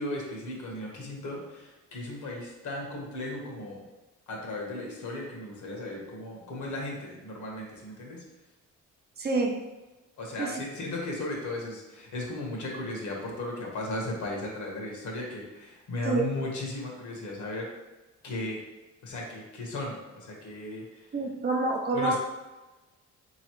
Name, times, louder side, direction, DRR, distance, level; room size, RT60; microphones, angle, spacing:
voice 1, 0.0-3.8 4.3-8.2 10.2-17.7 18.2-18.6 19.0-21.0 21.9-22.2, left 2 dB, 75° left, -1 dB, 1.2 m, -36 dB
voice 2, 9.2-9.7 10.4-10.6 16.0-16.3 21.1-22.2, right 3 dB, 35° right, 1 dB, 0.6 m, -27 dB
3.8 x 3.1 x 3.0 m, 1.1 s
cardioid pair, 90°, 30 cm